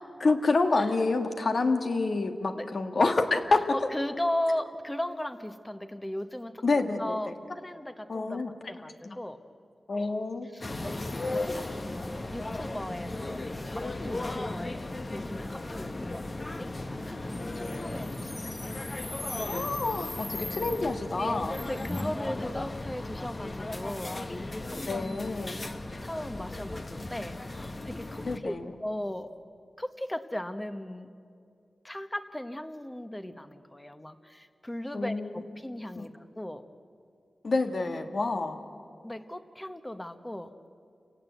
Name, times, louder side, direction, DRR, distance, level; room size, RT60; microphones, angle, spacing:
voice 1, 0.2-3.6 6.6-7.2 8.1-8.5 9.1-9.2 9.9-10.5 10.8-10.9 19.5-21.6 24.9-25.6 28.3-28.7 34.9-35.3 36.0-36.1 37.4-38.6, left 3 dB, 55° left, 6 dB, 1.7 m, -28 dB
voice 2, 3.7-8.4 8.7-9.4 10.4-14.8 15.1-16.7 17.0-19.1 21.7-25.2 26.0-28.5 28.8-29.3 29.8-31.1 31.8-36.6 39.0-40.5, left 1 dB, 15° left, 9 dB, 1.2 m, -37 dB
sound 1, 10.6-28.4, left 2 dB, 35° left, 1.2 m, -36 dB
28.5 x 17.5 x 8.1 m, 2.4 s
wide cardioid pair, 90°, 0 cm